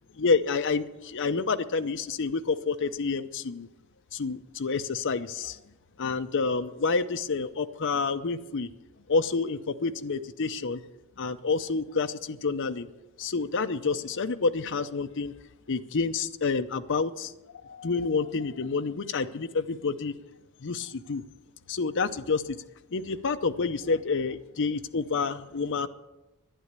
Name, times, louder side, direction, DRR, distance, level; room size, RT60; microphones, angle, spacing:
voice 1, 0.2-3.7 4.1-5.6 6.0-8.7 9.1-10.8 11.2-12.9 13.2-15.3 15.7-17.3 17.6-20.1 20.6-21.2 21.7-22.6 22.9-25.9, left 4 dB, 55° left, 8 dB, 0.6 m, -28 dB
11.5 x 9.9 x 8.1 m, 1.0 s
head